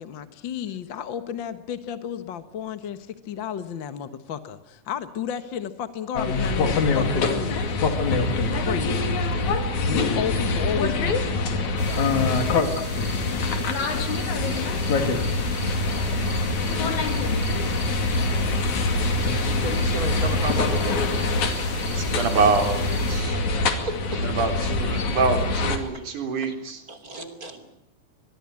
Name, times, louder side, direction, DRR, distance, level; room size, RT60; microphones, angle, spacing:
voice 1, 0.0-7.7 8.5-9.2 9.9-12.1 13.8-15.3, left 8 dB, 50° left, 11 dB, 1.6 m, -33 dB
sound 1, 6.2-25.8, left 3 dB, 70° left, 3.9 m, -24 dB
voice 2, 10.2-11.0 17.1-17.9 27.0-27.6, right 2 dB, 5° right, 1 dB, 5.1 m, -44 dB
sound 2, 11.8-23.2, equal, 10° left, 6.8 m, -38 dB
voice 3, 19.3-21.1 23.8-24.6 25.9-26.0 26.4-26.5 26.9-27.6, right 1 dB, 30° right, 8 dB, 3.3 m, -34 dB
voice 4, 21.9-23.4 24.2-26.8, right 4 dB, 75° right, 6 dB, 5.0 m, -25 dB
25.0 x 21.0 x 9.7 m, 0.77 s
omnidirectional pair, 3.6 m